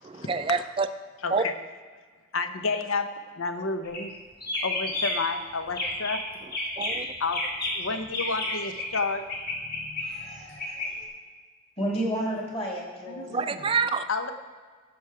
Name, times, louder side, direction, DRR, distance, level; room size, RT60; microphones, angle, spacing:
voice 1, 0.0-0.9 1.3-1.4 6.8-7.1 13.3-14.0, right 4 dB, 25° right, 10 dB, 0.4 m, -26 dB
voice 2, 1.2-1.5 2.3-3.1 3.4-4.1 4.6-6.2 7.2-7.4 7.7-9.2 13.1-13.7 14.1-14.3, left 4 dB, 80° left, 8 dB, 0.9 m, -30 dB
sound 1, 3.8-4.1 4.4-5.3 5.7-6.2 6.5-9.0 9.3-10.9, left 2 dB, 50° left, 2.2 m, -31 dB
voice 3, 10.0-11.0 11.8-13.3, right 1 dB, 30° left, -1 dB, 2.4 m, -32 dB
16.0 x 6.3 x 4.8 m, 1.5 s
head